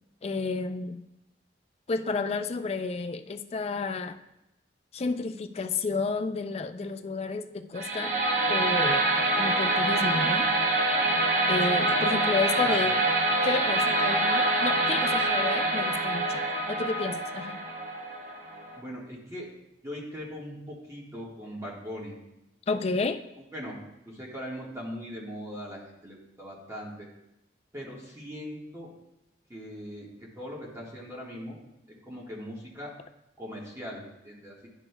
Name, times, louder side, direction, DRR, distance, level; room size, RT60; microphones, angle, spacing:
voice 1, 0.2-1.0 1.9-4.2 4.9-8.1 8.5-9.1 9.4-10.5 11.5-12.9 13.4-16.4 16.7-17.6 22.7-23.2, left 4 dB, 35° left, 9 dB, 0.4 m, -31 dB
sound 1, 7.7-18.8, right 2 dB, 45° right, 0.8 m, -25 dB
voice 2, 12.4-13.0 18.8-19.5 19.8-22.1 23.4-23.8 24.0-27.1 27.7-28.9 29.5-31.6 32.1-32.9 33.4-34.7, equal, 15° right, -4 dB, 1.4 m, -40 dB
11.0 x 6.4 x 2.2 m, 0.89 s
head